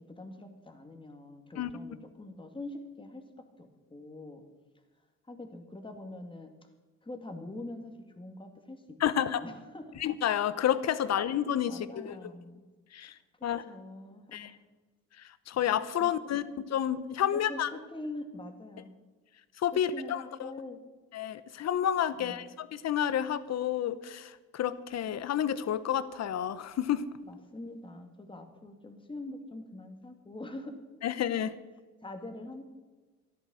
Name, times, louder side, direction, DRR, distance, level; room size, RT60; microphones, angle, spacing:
voice 1, 0.1-3.2 3.6-4.4 5.3-6.5 7.0-8.8 9.1-10.0 11.7-12.6 13.4-14.6 16.0-16.5 17.3-18.9 19.7-20.8 22.1-22.5 27.2-30.7 32.0-32.6, left 2 dB, 15° left, 5 dB, 2.2 m, -44 dB
voice 2, 9.0-9.4 10.0-12.2 12.9-13.1 13.4-13.6 14.3-14.5 15.2-16.4 16.7-17.7 19.6-20.5 21.1-27.1 31.0-31.5, left 10 dB, 60° left, 15 dB, 0.9 m, -30 dB
13.5 x 11.0 x 6.4 m, 1.3 s
cardioid pair, 90°, 30 cm